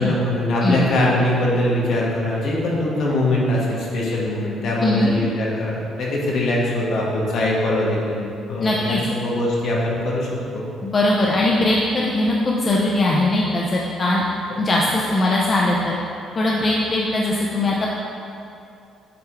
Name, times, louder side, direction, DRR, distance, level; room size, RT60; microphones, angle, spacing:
voice 1, 0.0-10.3 10.5-10.6, left 1 dB, 60° left, -4 dB, 1.5 m, -22 dB
voice 2, 8.6-9.0 10.8-14.2 14.6-16.0 16.4-17.9, left 2 dB, 30° left, -3 dB, 0.5 m, -20 dB
8.6 x 3.5 x 4.5 m, 2.7 s
cardioid pair, 145°, 0 cm